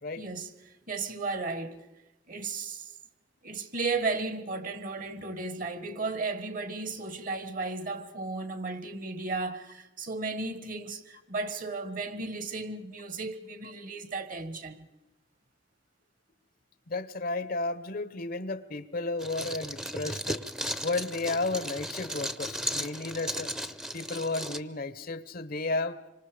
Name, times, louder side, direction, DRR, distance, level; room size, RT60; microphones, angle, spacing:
voice 1, 0.2-1.9 2.3-2.9 3.4-14.9 20.0-20.1, right 3 dB, 50° right, 1.6 m, -35 dB
voice 2, 16.9-23.5 23.9-26.0, left 3 dB, 55° left, 1.0 m, -33 dB
sound 1, 19.2-24.6, equal, 5° right, 0.8 m, -35 dB
26.5 x 25.0 x 5.0 m
head